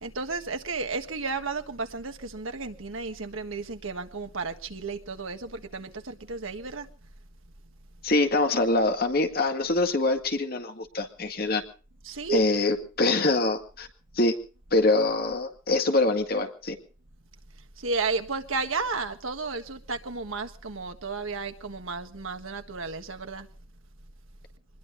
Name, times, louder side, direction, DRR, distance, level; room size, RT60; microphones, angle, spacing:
voice 1, 0.0-6.9 12.0-12.4 17.8-23.5, right 4 dB, 90° right, 1.6 m, -33 dB
voice 2, 8.0-11.6 12.3-13.9 14.2-14.4 14.7-16.8, left 2 dB, 50° left, 2.1 m, -24 dB
25.0 x 21.0 x 2.7 m
head